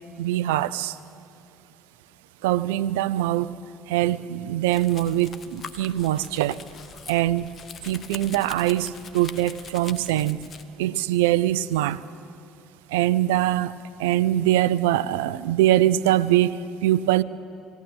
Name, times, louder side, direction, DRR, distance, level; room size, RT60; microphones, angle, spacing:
voice 1, 0.2-1.0 2.4-3.5 3.9-6.6 7.1-7.5 7.8-10.4 10.8-12.0 12.9-13.7 14.0-16.6 16.8-17.2, right 14 dB, 75° right, 17 dB, 0.5 m, -22 dB
Domestic sounds home sounds, 4.7-10.6, left 6 dB, 45° left, 1.0 m, -43 dB
18.5 x 17.5 x 8.7 m, 2.7 s
hypercardioid pair, 60°, 0 cm